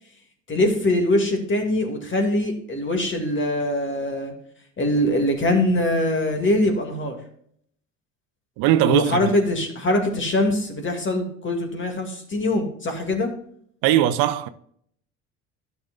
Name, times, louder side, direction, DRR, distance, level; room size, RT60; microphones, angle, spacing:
voice 1, 0.5-4.3 4.8-7.2 8.9-13.3, left 1 dB, 30° left, 2.3 m, -23 dB
voice 2, 8.6-9.4 13.8-14.5, right 12 dB, 65° right, 0.7 m, -20 dB
12.0 x 6.9 x 2.5 m
hypercardioid pair, 75°, 38 cm